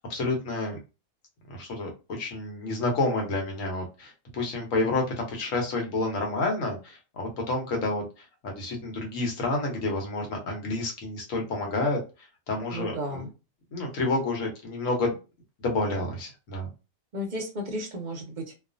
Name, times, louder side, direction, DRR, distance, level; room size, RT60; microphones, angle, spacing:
voice 1, 0.1-0.8 1.5-1.9 2.2-8.0 8.4-12.0 12.5-13.3 13.7-15.2 15.6-16.7, left 2 dB, 75° left, 1 dB, 1.3 m, -29 dB
voice 2, 12.7-13.3 17.1-18.5, equal, 50° right, 2 dB, 0.6 m, -34 dB
2.5 x 2.4 x 2.5 m, 0.29 s
omnidirectional pair, 1.4 m